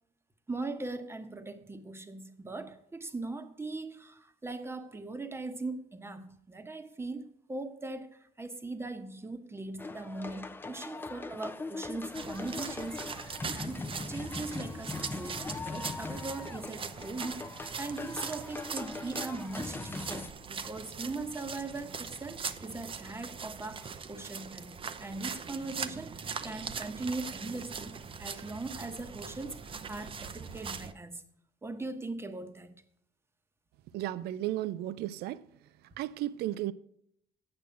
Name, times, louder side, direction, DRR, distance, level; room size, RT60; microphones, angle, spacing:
voice 1, 0.5-17.5 17.8-31.2 31.6-32.7, right 3 dB, 15° right, 1.0 m, -40 dB
sound 1, 9.8-20.3, left 3 dB, 10° left, 0.5 m, -40 dB
sound 2, 12.1-30.9, right 6 dB, 30° right, 0.6 m, -41 dB
voice 2, 33.9-35.4 36.0-36.7, right 14 dB, 75° right, 0.4 m, -34 dB
8.6 x 6.2 x 8.2 m
cardioid pair, 110°, 17 cm